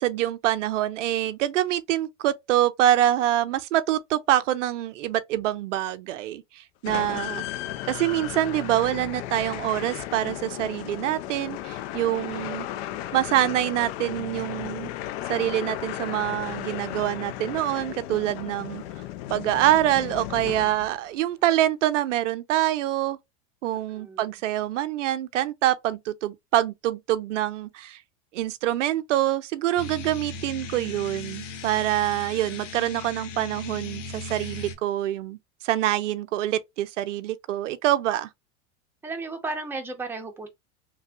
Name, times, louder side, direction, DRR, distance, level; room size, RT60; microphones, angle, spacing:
voice 1, 0.0-7.4 7.9-12.7 13.1-14.9 15.3-18.8 19.3-23.2 23.6-28.0 28.3-35.4 35.6-38.3, right 13 dB, 85° right, 0.5 m, -25 dB
sound 1, 6.8-21.1, left 13 dB, 55° left, 0.5 m, -35 dB
voice 2, 6.9-7.8 23.6-24.3 39.0-40.5, right 3 dB, 5° right, 0.7 m, -36 dB
sound 2, 29.8-34.8, left 3 dB, 80° left, 0.9 m, -38 dB
3.2 x 2.2 x 2.7 m
hypercardioid pair, 115°, 36 cm